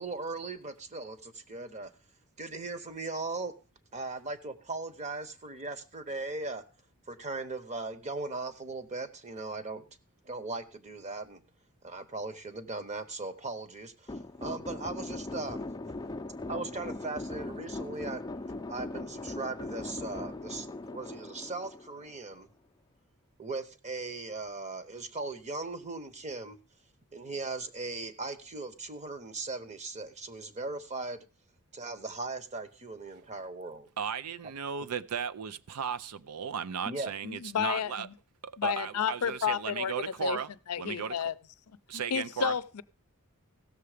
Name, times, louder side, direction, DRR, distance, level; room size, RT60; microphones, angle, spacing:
voice 1, 0.0-1.9 2.4-3.5 3.9-6.6 7.1-9.8 10.2-11.4 11.8-15.7 16.5-18.2 18.7-22.5 23.4-26.6 27.1-31.2 31.7-33.9 36.8-37.1, right 3 dB, 30° right, 1.0 m, -38 dB
sound 1, 14.1-22.4, left 2 dB, 15° left, 0.5 m, -39 dB
voice 2, 34.0-38.1 38.4-40.5 40.8-41.1 41.9-42.6, right 7 dB, 85° right, 0.5 m, -35 dB
voice 3, 37.2-38.1 38.6-39.9 40.2-40.4 40.7-41.3 41.9-42.8, left 7 dB, 75° left, 0.5 m, -31 dB
16.0 x 6.9 x 5.0 m
head